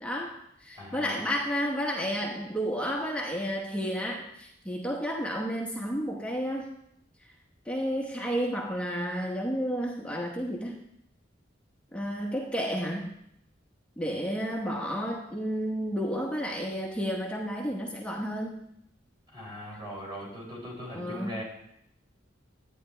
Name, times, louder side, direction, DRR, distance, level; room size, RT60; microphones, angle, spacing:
voice 1, 0.0-6.7 7.7-10.8 11.9-13.1 14.0-18.6 20.9-21.4, equal, 5° left, -2 dB, 1.0 m, -31 dB
voice 2, 0.8-1.1 19.3-21.4, equal, 25° right, -4 dB, 4.3 m, -39 dB
11.0 x 9.2 x 3.3 m, 0.74 s
head